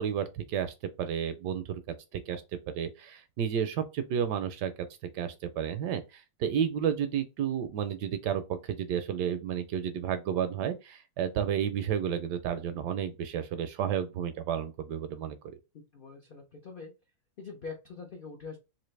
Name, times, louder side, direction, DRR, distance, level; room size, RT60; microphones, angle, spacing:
voice 1, 0.0-2.4 2.7-4.7 5.1-15.6, right 8 dB, 75° right, 1.1 m, -32 dB
voice 2, 15.7-16.9 17.4-18.6, left 4 dB, 60° left, 0.5 m, -44 dB
4.0 x 2.7 x 3.2 m
omnidirectional pair, 2.0 m